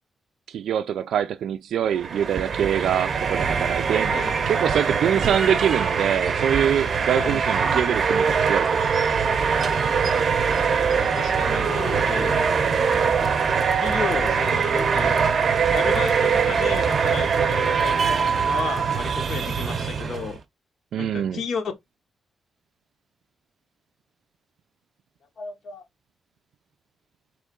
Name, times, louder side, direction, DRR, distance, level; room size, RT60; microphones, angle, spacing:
voice 1, 0.5-8.9 20.9-21.4, right 9 dB, 85° right, 0.3 m, -24 dB
sound 1, 1.9-20.4, right 6 dB, 45° right, 0.6 m, -22 dB
voice 2, 10.9-12.5 13.8-15.3 15.7-20.4 21.0-21.7 25.4-25.8, left 5 dB, 65° left, 0.8 m, -33 dB
3.7 x 3.1 x 3.6 m
wide cardioid pair, 170°, 0 cm